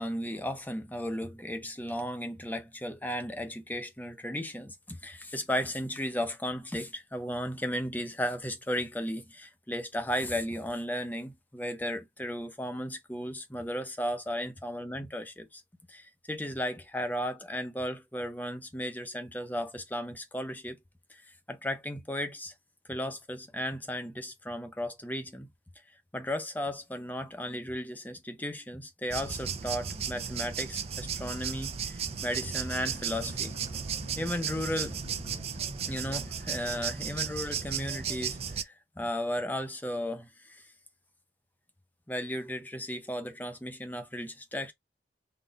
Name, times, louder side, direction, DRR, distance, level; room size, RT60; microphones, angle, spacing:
voice 1, 0.0-15.6 15.9-20.8 21.1-22.5 22.9-25.5 26.1-33.5 34.2-35.0 35.9-40.7 42.1-44.7, equal, 10° left, 0.7 m, -35 dB
sound 1, 29.1-38.6, right 7 dB, 35° right, 0.4 m, -35 dB
sound 2, 31.5-37.3, equal, 40° left, 1.1 m, -48 dB
3.9 x 2.4 x 3.8 m
head